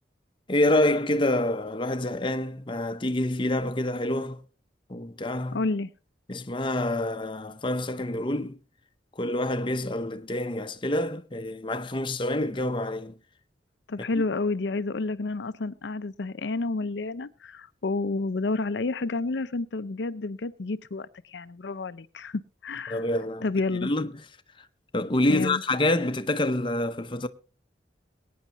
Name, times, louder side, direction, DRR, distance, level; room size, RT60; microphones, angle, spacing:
voice 1, 0.5-4.4 4.9-5.6 6.3-8.6 9.2-13.1 22.9-23.5 23.8-24.2 24.6-24.7 24.9-27.3, left 1 dB, 30° left, 0.8 m, -27 dB
voice 2, 5.5-5.9 13.9-23.0 23.4-23.9 25.3-25.6, left 3 dB, 75° left, 0.6 m, -30 dB
22.5 x 9.4 x 3.0 m
head